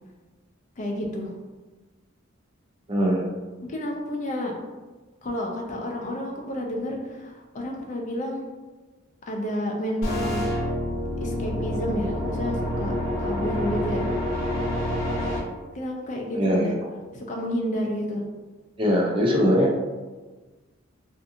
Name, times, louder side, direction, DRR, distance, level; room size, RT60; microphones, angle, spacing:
voice 1, 0.8-1.3 3.6-4.5 5.2-8.4 9.3-10.4 11.2-12.9 13.2-14.1 15.7-16.7 17.1-18.3, equal, 35° left, 0 dB, 0.4 m, -30 dB
voice 2, 2.9-3.3 16.3-16.9 18.8-19.7, equal, 25° right, -2 dB, 0.4 m, -21 dB
sound 1, 10.0-15.4, left 1 dB, 70° left, 0.7 m, -27 dB
2.6 x 2.5 x 2.6 m, 1.3 s
head